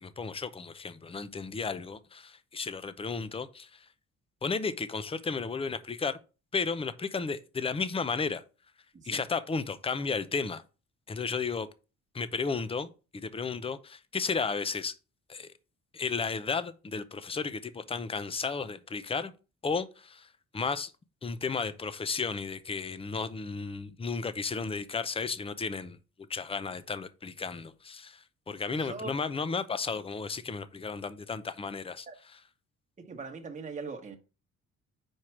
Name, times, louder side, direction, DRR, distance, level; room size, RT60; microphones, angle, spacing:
voice 1, 0.0-3.7 4.4-6.2 6.5-8.4 9.1-10.6 11.1-11.7 12.1-14.9 15.3-15.5 15.9-19.3 19.6-20.3 20.5-20.9 21.2-26.0 26.3-28.2 28.5-32.1, left 5 dB, 20° left, 0.6 m, -33 dB
voice 2, 28.8-29.1 32.1-32.2 33.0-34.2, right 4 dB, 25° right, 1.2 m, -40 dB
4.8 x 4.5 x 5.9 m
cardioid pair, 90°, 30 cm